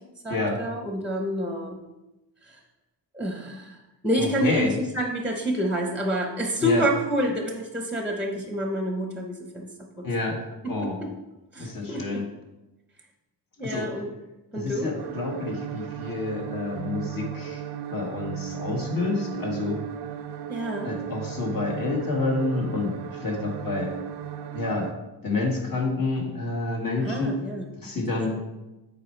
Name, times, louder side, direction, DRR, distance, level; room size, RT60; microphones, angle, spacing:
voice 1, 0.2-1.8 2.4-2.6 3.1-3.8 4.0-9.7 10.0-10.1 10.6-10.9 11.5-12.2 13.6-14.1 14.5-14.9 20.5-20.9 27.0-27.7 27.9-28.4, equal, 5° right, 2 dB, 0.8 m, -28 dB
voice 2, 4.2-4.7 6.6-6.8 10.0-11.0 11.6-12.3 13.6-13.9 14.5-17.6 17.9-19.8 20.8-23.9 24.5-25.0 25.2-27.4 27.8-28.3, left 3 dB, 55° left, 0 dB, 1.8 m, -28 dB
sound 1, 15.0-24.9, right 10 dB, 75° right, 0.6 m, -35 dB
7.7 x 4.6 x 4.6 m, 1.0 s
wide cardioid pair, 125°, 42 cm